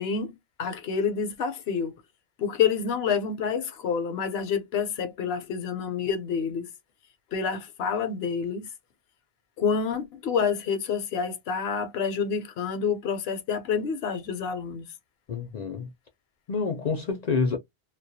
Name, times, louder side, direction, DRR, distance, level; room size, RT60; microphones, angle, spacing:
voice 1, 0.0-1.9 2.4-6.7 7.3-8.7 9.6-14.8, left 6 dB, 75° left, 0.8 m, -28 dB
voice 2, 15.3-15.9 16.5-17.6, left 4 dB, 55° left, 0.5 m, -27 dB
2.2 x 2.1 x 2.6 m
omnidirectional pair, 1.1 m